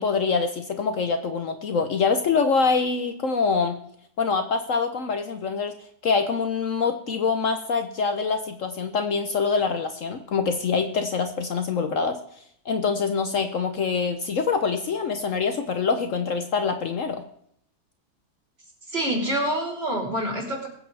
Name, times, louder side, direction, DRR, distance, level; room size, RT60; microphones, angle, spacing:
voice 1, 0.0-3.8 4.2-5.7 6.0-12.2 12.7-17.2, left 5 dB, 55° left, 7 dB, 1.2 m, -25 dB
voice 2, 18.9-20.7, right 1 dB, 40° right, -2 dB, 4.1 m, -26 dB
21.5 x 8.7 x 3.4 m, 0.68 s
omnidirectional pair, 1.7 m